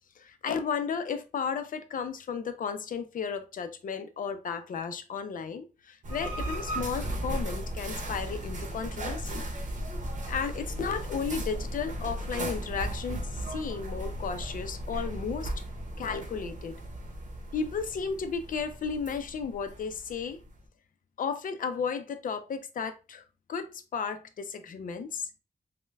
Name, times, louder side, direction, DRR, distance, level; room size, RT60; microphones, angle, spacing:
voice 1, 0.2-9.4 10.3-15.5 16.0-16.8 17.5-20.4 21.2-23.2 23.5-25.3, left 6 dB, 80° left, 0.5 m, -34 dB
sound 1, 6.0-20.6, right 1 dB, 65° right, 0.7 m, -36 dB
5.3 x 2.2 x 2.2 m
wide cardioid pair, 135°, 14 cm